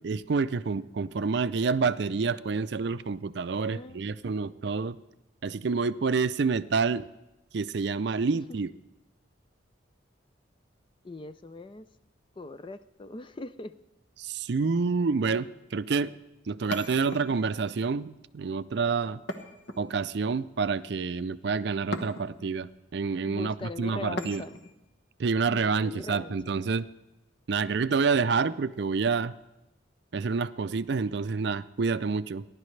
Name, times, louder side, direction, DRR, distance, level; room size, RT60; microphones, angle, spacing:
voice 1, 0.0-5.0 5.4-7.0 7.5-8.7 14.2-16.1 16.5-19.2 19.8-24.4 25.2-26.9 27.5-29.3 30.1-32.4, right 4 dB, 55° right, 14 dB, 0.4 m, -28 dB
voice 2, 3.7-4.1 8.3-8.6 11.0-11.9 12.4-13.8 23.2-24.6 25.4-26.4, left 2 dB, 25° left, 12 dB, 0.4 m, -41 dB
sound 1, 16.7-17.7 19.3-20.3 21.9-22.5 24.2-24.8, left 1 dB, 60° left, 1.2 m, -39 dB
28.5 x 11.5 x 3.3 m, 0.96 s
head